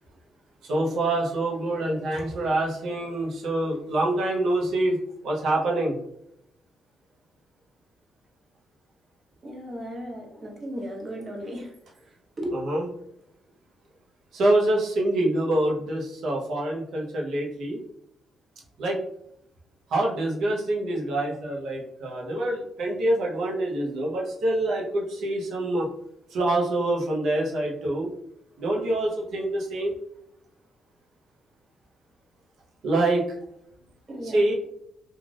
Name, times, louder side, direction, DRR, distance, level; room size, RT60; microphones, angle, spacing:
voice 1, 0.6-5.0 5.2-6.0 12.5-12.9 14.3-17.8 18.8-19.0 19.9-25.9 26.3-28.1 28.6-30.0 32.8-33.2 34.2-34.5, right 1 dB, 70° right, -2 dB, 0.8 m, -25 dB
voice 2, 9.4-11.7 12.4-12.5 34.1-34.5, equal, 35° right, 0 dB, 0.8 m, -35 dB
2.5 x 2.4 x 3.2 m, 0.75 s
cardioid pair, 90°, 0 cm